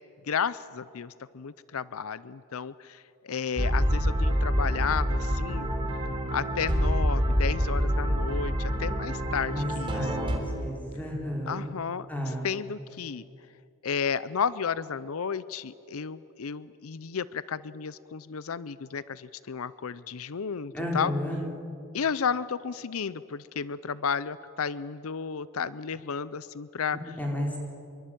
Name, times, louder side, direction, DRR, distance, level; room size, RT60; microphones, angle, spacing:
voice 1, 0.3-5.7 6.3-10.3 11.5-13.2 13.8-21.1 21.9-27.1, left 6 dB, 75° left, 17 dB, 0.6 m, -33 dB
sound 1, 3.6-10.4, equal, 20° right, 3.5 m, -27 dB
voice 2, 9.5-11.7 12.1-12.5 20.7-21.4 27.2-27.6, left 1 dB, 5° left, -1 dB, 4.4 m, -32 dB
26.0 x 23.0 x 9.1 m, 2.7 s
head